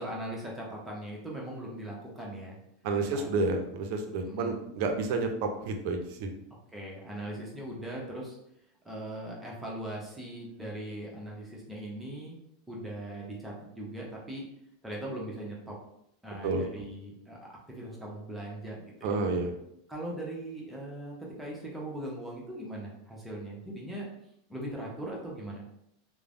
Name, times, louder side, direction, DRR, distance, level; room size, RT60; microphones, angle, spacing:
voice 1, 0.0-2.6 3.1-3.3 4.3-4.6 6.7-8.4 8.8-12.4 12.7-14.4 14.8-15.8 16.2-19.2 19.9-24.1 24.5-25.6, right 1 dB, 10° right, -3 dB, 0.8 m, -40 dB
voice 2, 2.8-6.3 16.4-16.8 19.0-19.6, right 3 dB, 60° right, 5 dB, 0.5 m, -30 dB
3.1 x 2.1 x 2.5 m, 0.75 s
supercardioid pair, 120°, 0 cm